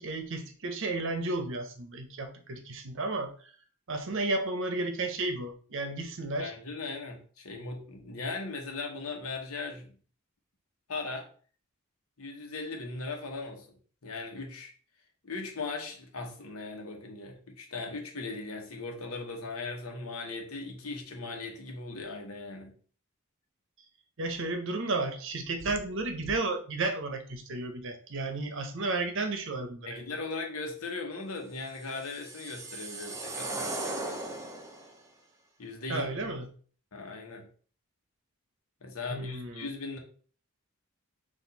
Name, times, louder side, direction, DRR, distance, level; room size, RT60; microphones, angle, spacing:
voice 1, 0.0-3.5 3.9-6.5 24.2-30.0 35.9-36.5 39.1-39.7, right 2 dB, 60° right, 5 dB, 0.8 m, -33 dB
voice 2, 6.4-10.0 10.9-11.3 12.2-13.8 14.0-14.7 15.2-22.8 29.9-33.8 35.6-36.2 36.9-37.5 38.8-40.0, left 3 dB, 75° left, 2 dB, 1.0 m, -38 dB
sound 1, 31.7-34.9, right 2 dB, 15° right, 0.6 m, -37 dB
4.4 x 2.6 x 3.9 m, 0.44 s
head